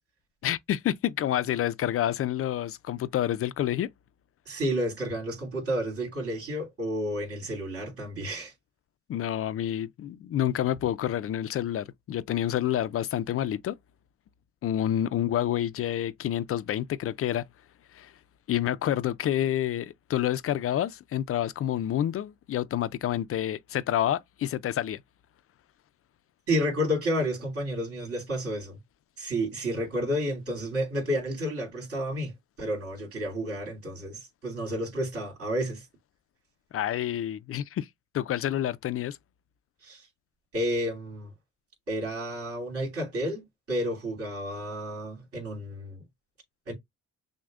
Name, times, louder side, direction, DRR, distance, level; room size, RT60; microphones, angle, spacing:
voice 1, 0.4-3.9 9.1-13.8 14.6-17.4 17.9-18.1 18.5-25.0 36.7-37.9 38.1-39.2, left 11 dB, 50° left, 0.4 m, -28 dB
voice 2, 4.5-8.5 26.5-28.8 29.2-32.3 32.6-35.8 39.8-40.0 40.5-41.3 41.9-46.0 46.7-46.8, equal, 50° right, 2.6 m, -31 dB
6.1 x 2.2 x 2.4 m
cardioid pair, 90°, 30 cm